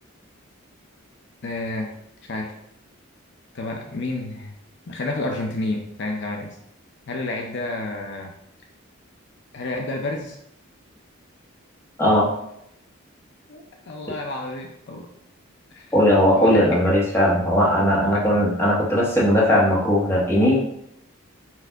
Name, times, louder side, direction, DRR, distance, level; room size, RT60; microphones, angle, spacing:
voice 1, 1.4-1.9 2.3-2.5 3.5-4.5 4.9-6.6 7.1-8.3 9.5-10.4 13.5-15.1 15.7-15.9 16.4-16.6 16.9-17.0 18.1-18.3, left 2 dB, 60° left, 2 dB, 0.6 m, -30 dB
voice 2, 12.0-12.3 15.9-20.6, equal, 10° left, -5 dB, 1.2 m, -18 dB
4.5 x 2.6 x 4.5 m, 0.75 s
head